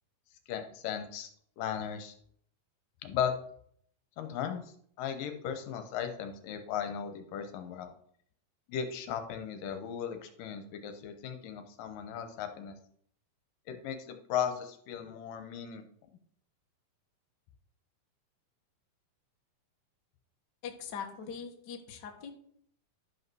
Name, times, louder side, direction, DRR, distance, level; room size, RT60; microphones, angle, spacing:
voice 1, 0.5-1.3 1.6-2.2 3.0-3.3 4.2-4.6 5.0-7.9 8.7-12.7 13.7-15.8, left 8 dB, 75° left, 7 dB, 2.5 m, -36 dB
voice 2, 20.6-22.3, left 7 dB, 55° left, 3 dB, 1.2 m, -41 dB
12.0 x 5.4 x 6.2 m, 0.64 s
omnidirectional pair, 4.1 m